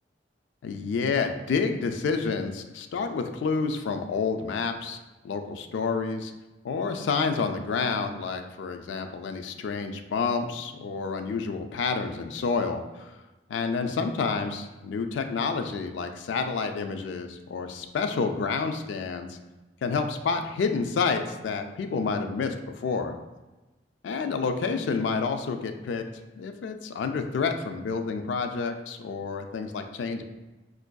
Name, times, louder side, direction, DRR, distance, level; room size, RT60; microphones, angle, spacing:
voice 1, 0.6-5.0 5.2-6.3 6.6-13.2 13.5-19.4 19.8-23.2 24.0-26.0 26.4-30.2, left 5 dB, 75° left, 6 dB, 0.3 m, -29 dB
4.5 x 2.5 x 2.2 m, 1.1 s
head